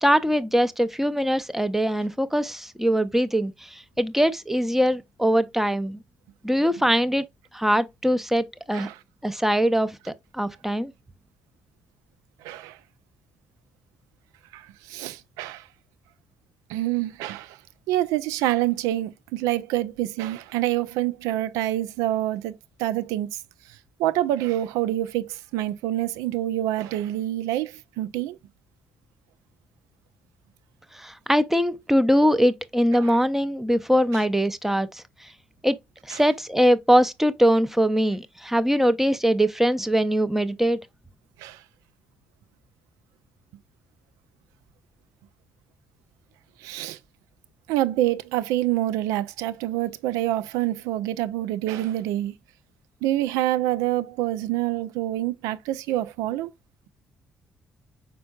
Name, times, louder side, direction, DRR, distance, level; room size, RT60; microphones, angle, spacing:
voice 1, 0.0-6.0 6.4-7.3 7.5-8.9 9.2-10.9 31.0-35.0 35.6-35.8 36.1-40.8, equal, 5° right, 0.5 m, -22 dB
voice 2, 12.4-12.8 14.5-14.6 14.9-15.6 16.7-17.6 17.9-22.5 22.8-23.3 24.0-28.4 32.9-33.2 34.1-34.2 36.1-36.2 41.4-41.6 46.6-47.0 47.7-52.3 53.0-56.5, right 14 dB, 65° right, 0.4 m, -26 dB
5.2 x 4.3 x 2.4 m
figure-of-eight pair, 45°, 6 cm